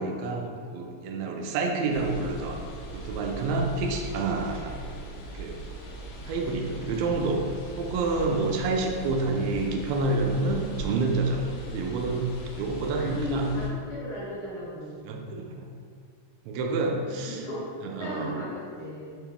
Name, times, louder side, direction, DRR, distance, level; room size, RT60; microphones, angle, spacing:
voice 1, 0.0-2.6 2.9-4.8 5.3-5.6 6.3-7.4 7.8-13.5 15.1-15.7 16.5-17.4 18.0-18.4, right 3 dB, 80° right, 2 dB, 1.7 m, -28 dB
sound 1, 1.9-13.7, right 1 dB, 80° left, 1.7 m, -40 dB
voice 2, 12.9-15.1 17.1-17.7 18.0-19.2, left 2 dB, 45° left, -14 dB, 1.1 m, -36 dB
4.7 x 3.0 x 3.4 m, 2.1 s
omnidirectional pair, 3.3 m